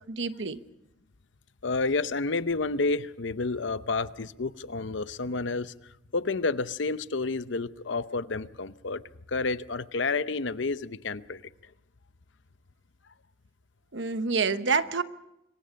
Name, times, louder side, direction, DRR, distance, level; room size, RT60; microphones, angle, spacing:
voice 1, 0.1-0.6 13.9-15.0, right 4 dB, 65° right, 1.0 m, -27 dB
voice 2, 1.6-5.7 6.1-9.0 9.3-11.4, left 3 dB, 65° left, 0.7 m, -30 dB
26.0 x 23.0 x 5.3 m
head